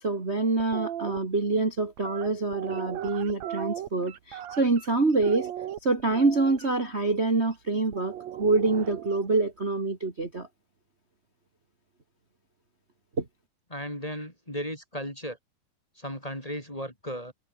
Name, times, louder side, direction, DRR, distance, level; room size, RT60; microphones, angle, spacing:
voice 1, 0.0-5.5 5.8-10.5 13.2-13.3, right 3 dB, 20° right, 2.6 m, -26 dB
sound 1, 0.6-1.2 2.0-4.9 5.2-6.7 7.9-9.3, right 10 dB, 65° right, 2.6 m, -37 dB
voice 2, 13.7-15.4 16.0-17.3, equal, 10° left, 3.7 m, -35 dB
omnidirectional pair, 3.6 m